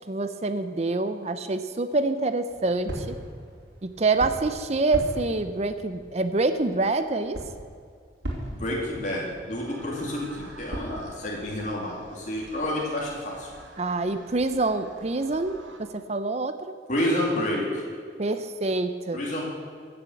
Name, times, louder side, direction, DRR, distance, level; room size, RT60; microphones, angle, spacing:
voice 1, 0.0-3.1 3.8-7.4 13.8-16.6 18.2-19.2, right 3 dB, 35° right, 10 dB, 0.6 m, -26 dB
sound 1, 2.5-11.1, equal, 70° right, 2.9 m, -39 dB
voice 2, 8.5-13.5 16.9-17.8 19.1-19.4, left 1 dB, 40° left, -4 dB, 2.6 m, -29 dB
sound 2, 9.5-15.8, right 2 dB, 85° right, 2.0 m, -48 dB
14.5 x 7.0 x 7.9 m, 2.1 s
head